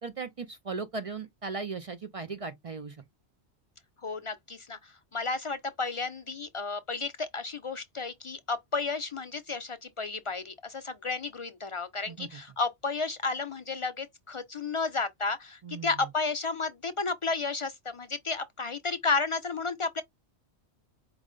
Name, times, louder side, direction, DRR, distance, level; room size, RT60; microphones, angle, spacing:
voice 1, 0.0-3.0 12.1-12.3 15.6-16.0, right 4 dB, 50° right, 0.4 m, -37 dB
voice 2, 4.0-20.0, left 4 dB, 60° left, 0.3 m, -32 dB
4.8 x 2.0 x 3.7 m
omnidirectional pair, 1.2 m